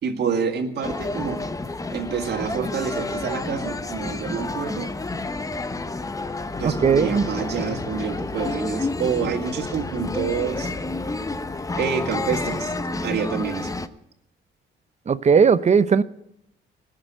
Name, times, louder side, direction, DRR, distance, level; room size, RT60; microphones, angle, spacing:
voice 1, 0.0-1.4 1.9-4.9 6.6-10.7 11.8-12.7 13.0-13.8, right 6 dB, 60° right, 2.2 m, -27 dB
sound 1, 0.8-13.9, left 2 dB, 15° left, 0.8 m, -30 dB
voice 2, 6.6-7.3 15.1-16.0, right 6 dB, 35° right, 0.7 m, -17 dB
19.5 x 6.6 x 9.0 m
cardioid pair, 90°, 20 cm